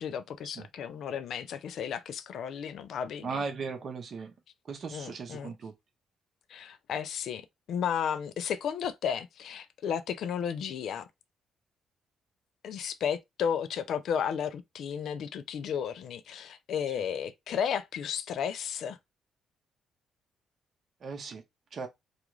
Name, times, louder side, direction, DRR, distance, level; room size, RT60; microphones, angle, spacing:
voice 1, 0.0-3.4 4.9-5.5 6.5-11.1 12.6-19.0, left 8 dB, 70° left, 0.4 m, -33 dB
voice 2, 3.2-4.3 4.7-5.7 21.0-21.4 21.7-21.9, right 5 dB, 50° right, 0.7 m, -37 dB
2.4 x 2.3 x 2.9 m
cardioid pair, 90°, 0 cm